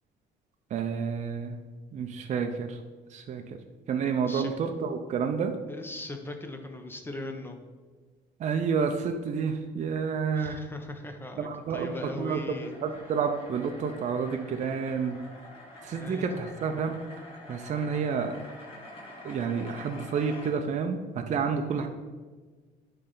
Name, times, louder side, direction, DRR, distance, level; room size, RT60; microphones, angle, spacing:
voice 1, 0.7-1.6 1.9-2.8 3.1-3.6 3.9-5.6 8.4-10.6 11.4-11.9 12.2-12.4 12.8-15.2 15.8-16.9 17.5-18.4 19.2-21.9, right 6 dB, 45° right, 5 dB, 0.5 m, -29 dB
voice 2, 5.7-7.6 10.3-12.7 15.9-16.2 18.0-18.2 21.7-21.9, left 2 dB, 15° left, 5 dB, 0.8 m, -39 dB
sound 1, 11.1-20.5, left 1 dB, 35° left, 1.8 m, -47 dB
9.7 x 3.3 x 3.9 m, 1.4 s
cardioid pair, 110°, 17 cm